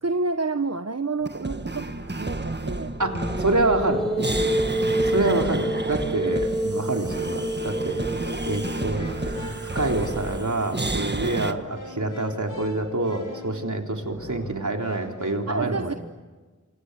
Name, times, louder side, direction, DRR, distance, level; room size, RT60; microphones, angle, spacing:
voice 1, 0.0-2.9 4.7-5.1 6.1-6.3 15.5-15.9, right 3 dB, 55° right, 8 dB, 1.1 m, -29 dB
sound 1, 1.2-11.5, right 2 dB, 35° right, 1.6 m, -31 dB
sound 2, 2.0-2.5 3.0-3.6 4.6-5.6 6.2-6.7 7.8-15.3, left 1 dB, 85° left, 5.1 m, -42 dB
sound 3, 3.0-10.4, equal, ahead, 5.9 m, -29 dB
voice 2, 3.0-4.0 5.0-8.0 8.5-9.3 9.7-16.0, right 2 dB, 75° right, 3 dB, 3.8 m, -26 dB
28.5 x 25.5 x 8.2 m, 1.3 s
wide cardioid pair, 50°, 30 cm